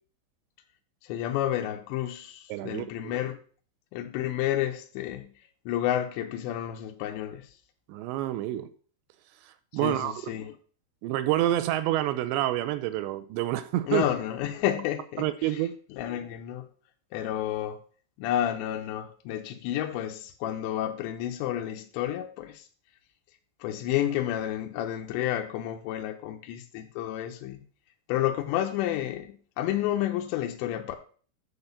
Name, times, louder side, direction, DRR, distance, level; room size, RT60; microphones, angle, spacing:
voice 1, 1.0-3.4 3.9-5.3 5.7-7.5 9.8-10.6 13.9-16.7 17.1-17.8 18.2-22.7 23.6-27.6 28.1-31.0, left 12 dB, 80° left, 2.9 m, -30 dB
voice 2, 2.5-3.2 7.9-8.7 9.4-10.1 11.0-14.1 15.2-15.7, right 14 dB, 85° right, 2.6 m, -28 dB
8.8 x 4.2 x 6.7 m
omnidirectional pair, 5.3 m